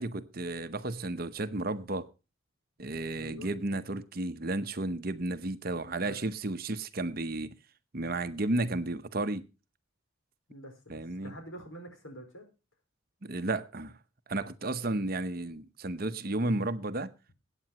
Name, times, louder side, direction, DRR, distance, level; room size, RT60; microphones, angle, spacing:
voice 1, 0.0-2.1 2.8-7.5 7.9-9.5 10.9-11.3 13.2-14.0 14.3-17.1, right 2 dB, 45° right, 0.8 m, -33 dB
voice 2, 3.1-3.5 6.0-6.2 10.5-12.5, right 1 dB, 75° left, 4.8 m, -46 dB
21.5 x 9.0 x 2.9 m
head